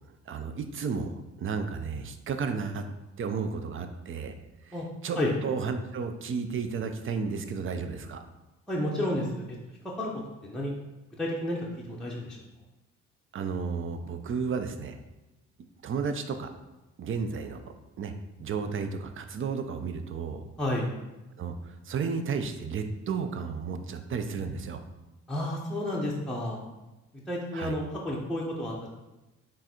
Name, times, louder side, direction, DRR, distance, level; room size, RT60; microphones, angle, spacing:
voice 1, 0.3-2.8 3.2-4.4 4.6-4.8 5.0-8.2 13.3-15.0 15.8-16.5 17.0-17.6 18.0-18.1 18.4-20.4 21.4-24.8 27.5-27.7, right 5 dB, 40° right, 8 dB, 0.5 m, -33 dB
voice 2, 8.7-9.6 10.0-10.1 10.4-10.7 11.2-12.4 20.6-20.9 25.3-26.6 27.3-28.7, left 1 dB, ahead, -4 dB, 0.7 m, -31 dB
3.8 x 2.5 x 4.2 m, 1.0 s
cardioid pair, 80°, 31 cm